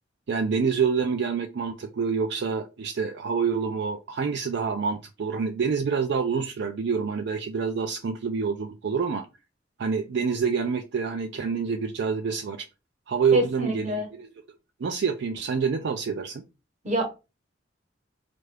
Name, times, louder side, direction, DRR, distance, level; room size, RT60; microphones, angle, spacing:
voice 1, 0.3-9.3 9.8-12.7 13.1-14.3 14.8-16.4, right 5 dB, 60° right, 5 dB, 0.4 m, -27 dB
voice 2, 13.3-14.1 16.8-17.0, equal, 40° right, 5 dB, 1.1 m, -26 dB
4.4 x 2.5 x 3.3 m, 0.27 s
head